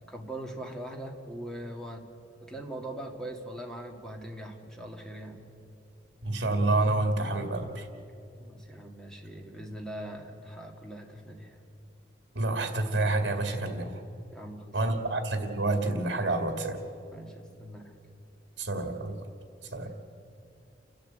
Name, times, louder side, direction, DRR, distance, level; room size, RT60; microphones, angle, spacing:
voice 1, 0.0-2.1 2.4-5.5 8.4-11.6 14.3-14.9 17.1-17.9 19.6-20.0, right 1 dB, 5° left, 1 dB, 2.0 m, -41 dB
voice 2, 6.2-7.9 12.3-13.9 14.7-16.8 18.6-19.2 19.7-19.9, right 2 dB, 65° right, 5 dB, 2.1 m, -28 dB
29.5 x 12.0 x 8.1 m, 2.5 s
head